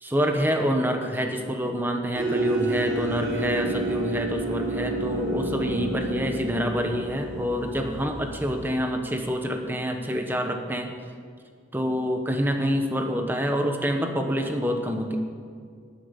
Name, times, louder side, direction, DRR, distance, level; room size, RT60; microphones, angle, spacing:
voice 1, 0.0-10.9 11.7-15.2, equal, 10° right, 4 dB, 1.2 m, -27 dB
sound 1, 2.2-8.7, right 2 dB, 80° right, 4.5 m, -29 dB
19.5 x 7.2 x 7.1 m, 2.2 s
head